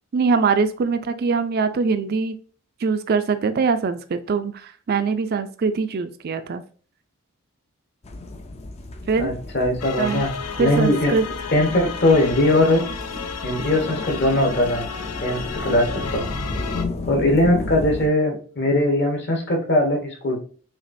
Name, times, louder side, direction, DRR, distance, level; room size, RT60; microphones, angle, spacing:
voice 1, 0.1-2.4 2.8-6.6 9.1-9.3 10.0-10.3 10.6-11.3, right 4 dB, 45° right, 10 dB, 0.4 m, -22 dB
sound 1, 8.0-18.1, left 2 dB, 30° left, 0.4 m, -33 dB
voice 2, 9.2-10.3 10.6-11.1 11.5-12.8 13.4-14.8 15.2-16.2 17.1-20.4, left 1 dB, 50° left, 1 dB, 1.1 m, -20 dB
sound 2, 9.8-16.8, left 6 dB, 85° left, 0.5 m, -33 dB
5.8 x 2.4 x 2.5 m, 0.42 s
head